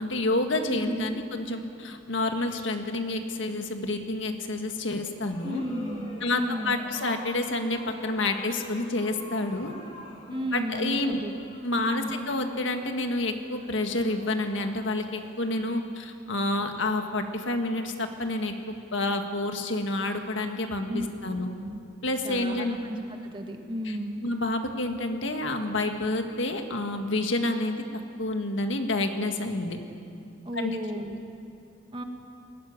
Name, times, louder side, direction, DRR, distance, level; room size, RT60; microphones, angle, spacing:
voice 1, 0.0-5.6 6.2-9.7 10.5-11.2 11.6-21.5 22.0-22.8 23.8-23.9 24.2-27.8 28.2-29.8 30.5-30.8, left 2 dB, 75° left, 5 dB, 1.7 m, -29 dB
voice 2, 0.7-1.2 5.4-6.8 10.3-11.3 11.7-12.2 20.9-21.1 21.6-21.8 22.2-24.2 30.4-31.2 31.9-32.0, equal, 25° right, 4 dB, 1.7 m, -33 dB
sound 1, 5.0-16.0, left 2 dB, 30° left, 2.9 m, -48 dB
21.0 x 16.0 x 9.6 m, 2.6 s
head